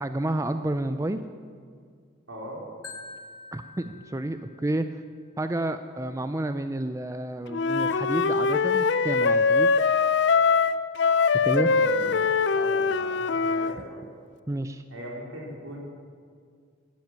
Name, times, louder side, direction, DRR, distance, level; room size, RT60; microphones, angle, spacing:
voice 1, 0.0-1.2 3.5-4.9 5.4-9.7 11.4-11.7 14.5-14.8, right 1 dB, 15° right, 9 dB, 0.4 m, -30 dB
voice 2, 2.3-2.6 11.5-12.1 12.5-14.1 14.9-15.8, equal, 80° right, -2 dB, 4.0 m, -39 dB
Marimba xylophone, 2.8-4.9, left 3 dB, 90° left, 1.9 m, -45 dB
Wind instrument woodwind instrument, 7.5-13.8, left 5 dB, 55° left, 0.5 m, -22 dB
12.5 x 11.0 x 8.9 m, 2.1 s
head